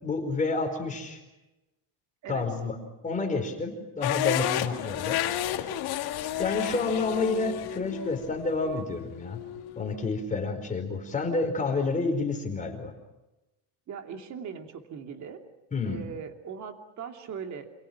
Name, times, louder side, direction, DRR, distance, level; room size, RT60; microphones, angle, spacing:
voice 1, 0.0-1.2 2.3-2.7 3.0-5.2 5.5-5.7 6.4-9.4 9.7-12.9 15.7-16.0, left 3 dB, 15° left, 4 dB, 4.6 m, -29 dB
sound 1, 4.0-10.1, left 12 dB, 55° left, 2.4 m, -32 dB
voice 2, 13.9-15.4 15.8-17.8, right 6 dB, 40° right, 5 dB, 2.8 m, -39 dB
28.5 x 28.0 x 6.0 m, 1.0 s
cardioid pair, 175°, 46 cm